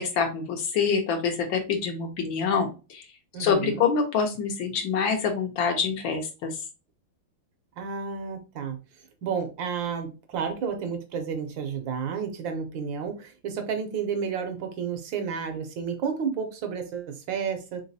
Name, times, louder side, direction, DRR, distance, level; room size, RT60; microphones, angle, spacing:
voice 1, 0.0-3.1 3.4-6.6, left 6 dB, 70° left, 4 dB, 1.5 m, -26 dB
voice 2, 3.3-3.9 7.8-8.8 9.2-17.8, right 6 dB, 70° right, 6 dB, 1.4 m, -31 dB
3.9 x 3.8 x 2.6 m, 0.31 s
omnidirectional pair, 2.3 m